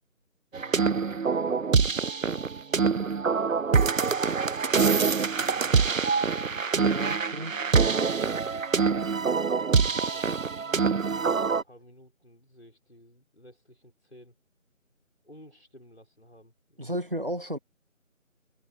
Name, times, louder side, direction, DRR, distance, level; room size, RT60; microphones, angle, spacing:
voice 1, 0.5-3.4 5.9-7.3 7.6-10.4 11.1-14.3 15.2-16.9, equal, 50° left, 6.4 m, -53 dB
sound 1, 0.5-11.6, right 5 dB, 70° right, 0.6 m, -25 dB
voice 2, 6.8-7.6 8.5-8.6 16.8-17.6, equal, 40° right, 1.8 m, -33 dB
sound 2, 9.2-11.8, right 1 dB, 15° left, 5.2 m, -62 dB
figure-of-eight pair, 180°, 42 cm